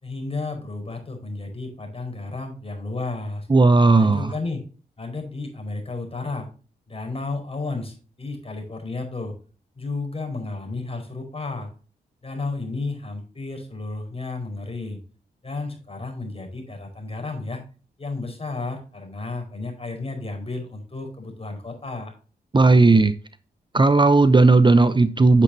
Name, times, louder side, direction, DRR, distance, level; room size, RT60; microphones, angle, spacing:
voice 1, 0.0-3.5 4.0-4.6 5.0-6.5 6.9-9.4 9.8-11.7 12.2-15.0 15.4-17.6 18.0-22.1, left 3 dB, 35° left, 3 dB, 4.8 m, -32 dB
voice 2, 3.5-4.3 22.5-23.1 23.7-25.4, right 3 dB, 25° right, 12 dB, 0.7 m, -15 dB
9.1 x 8.0 x 2.7 m, 0.37 s
cardioid pair, 50°, 18 cm